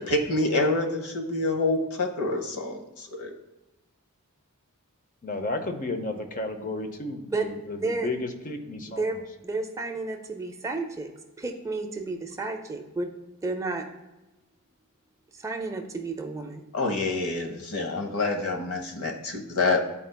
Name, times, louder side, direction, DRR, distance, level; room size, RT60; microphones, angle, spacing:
voice 1, 0.0-3.3 16.7-19.8, left 2 dB, 75° left, 3 dB, 0.9 m, -27 dB
voice 2, 5.2-9.2, left 2 dB, 35° left, 6 dB, 0.6 m, -33 dB
voice 3, 7.8-8.1 8.9-9.2 9.4-11.1 11.4-13.1 13.4-13.8 15.4-16.6, right 3 dB, 15° right, 4 dB, 0.4 m, -31 dB
11.5 x 4.3 x 2.2 m, 1.0 s
head